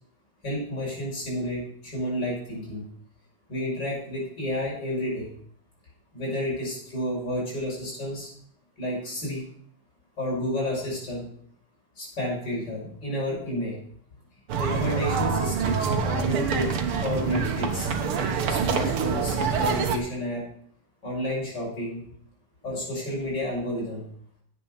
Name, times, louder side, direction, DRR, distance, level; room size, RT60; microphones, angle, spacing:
voice 1, 0.4-2.9 3.5-5.3 6.1-8.3 8.8-9.5 10.2-11.3 12.0-13.8 14.6-16.7 17.0-17.9 18.2-20.5 21.0-22.1 22.6-24.1, left 1 dB, 50° left, -4 dB, 6.9 m, -31 dB
sound 1, 14.5-20.0, right 5 dB, 75° right, 2.1 m, -26 dB
10.5 x 8.5 x 6.4 m, 0.65 s
omnidirectional pair, 2.4 m